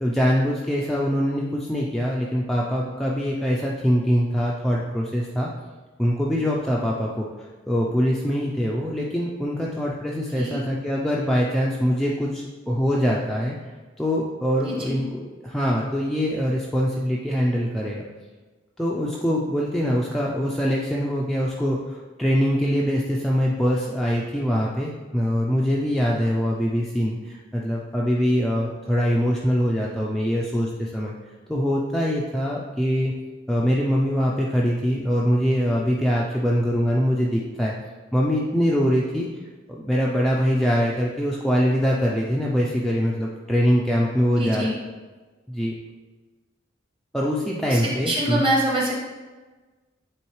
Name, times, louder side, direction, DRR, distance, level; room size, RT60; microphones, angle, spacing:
voice 1, 0.0-5.5 6.0-13.6 14.0-18.0 18.8-31.1 31.5-33.1 33.5-37.7 38.1-39.4 39.7-44.7 45.5-45.8 47.1-48.4, equal, ahead, -4 dB, 0.4 m, -23 dB
voice 2, 14.6-15.0 44.4-44.7 47.7-48.9, right 1 dB, 25° right, -3 dB, 1.2 m, -25 dB
8.6 x 3.6 x 3.1 m, 1.3 s
head